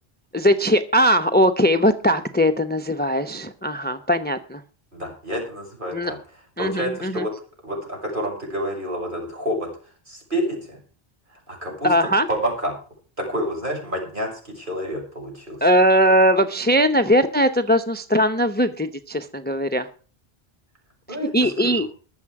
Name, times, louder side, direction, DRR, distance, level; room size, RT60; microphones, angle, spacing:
voice 1, 0.3-4.6 5.9-6.1 6.6-7.2 11.8-12.3 15.6-19.9 21.1-21.9, equal, 10° left, 10 dB, 0.7 m, -20 dB
voice 2, 4.9-6.2 6.6-7.3 7.6-9.7 10.1-10.8 11.3-11.9 12.3-12.8 13.2-15.6 21.1-21.7, equal, 55° right, 0 dB, 6.3 m, -28 dB
21.0 x 7.3 x 4.8 m, 0.39 s
omnidirectional pair, 1.0 m